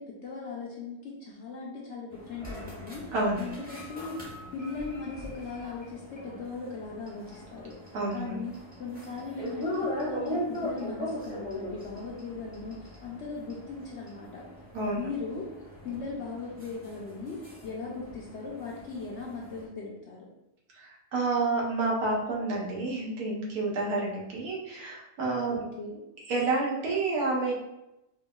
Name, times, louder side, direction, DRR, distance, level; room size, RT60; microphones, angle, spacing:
voice 1, 0.0-3.0 3.4-7.7 8.1-14.4 14.9-15.4 15.8-17.4 17.6-20.3 25.5-26.0, left 4 dB, 65° left, -3 dB, 0.7 m, -38 dB
sound 1, 2.1-19.6, left 1 dB, 10° right, 0.6 m, -40 dB
voice 2, 3.1-3.4 7.9-8.4 14.7-15.0 20.7-25.6 26.3-27.5, right 3 dB, 85° right, -3 dB, 1.3 m, -29 dB
4.5 x 2.2 x 2.3 m, 0.90 s
omnidirectional pair, 1.6 m